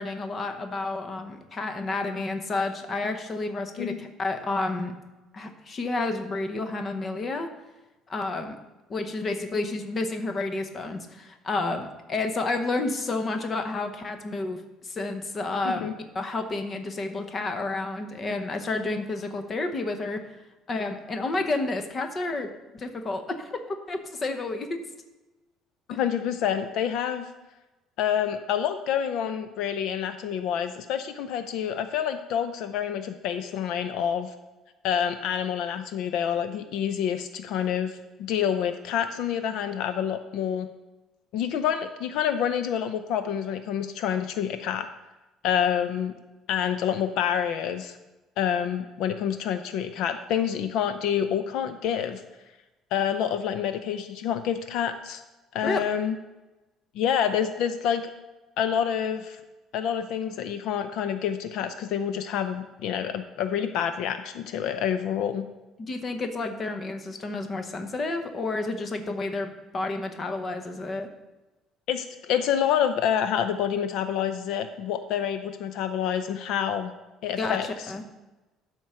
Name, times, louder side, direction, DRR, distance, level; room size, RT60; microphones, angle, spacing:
voice 1, 0.0-4.9 5.3-7.5 8.1-8.6 8.9-20.2 20.7-24.8 25.9-26.0 55.6-55.8 65.8-71.1 77.4-78.0, left 2 dB, 25° left, 7 dB, 0.8 m, -30 dB
voice 2, 25.9-27.3 28.0-34.3 34.8-40.7 41.3-44.9 45.4-46.2 46.5-48.0 48.4-52.2 52.9-55.2 55.5-56.2 56.9-58.1 58.6-59.4 59.7-65.5 71.9-76.9 77.2-77.9, left 9 dB, 65° left, 9 dB, 0.5 m, -27 dB
12.5 x 4.6 x 5.6 m, 1.1 s
cardioid pair, 165°, 0 cm